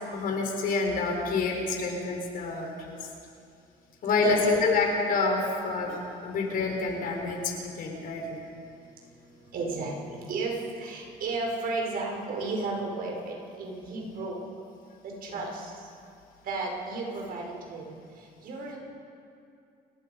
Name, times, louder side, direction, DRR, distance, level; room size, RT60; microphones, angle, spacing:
voice 1, 0.1-3.0 4.0-8.4 15.3-15.4, left 3 dB, 60° left, 1 dB, 4.9 m, -28 dB
voice 2, 9.5-14.4 15.0-15.7 16.4-18.8, right 3 dB, 60° right, 0 dB, 5.5 m, -33 dB
29.5 x 16.5 x 5.5 m, 2.5 s
cardioid pair, 110°, 17 cm